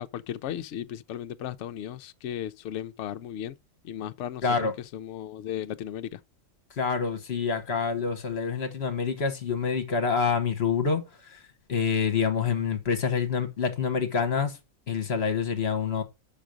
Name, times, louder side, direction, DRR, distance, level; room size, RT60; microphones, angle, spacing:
voice 1, 0.0-3.5 3.8-6.2, left 10 dB, 65° left, 0.8 m, -36 dB
voice 2, 4.4-4.7 6.8-11.4 11.7-14.6 14.9-16.0, left 6 dB, 45° left, 1.3 m, -27 dB
6.0 x 5.3 x 5.1 m
omnidirectional pair, 1.5 m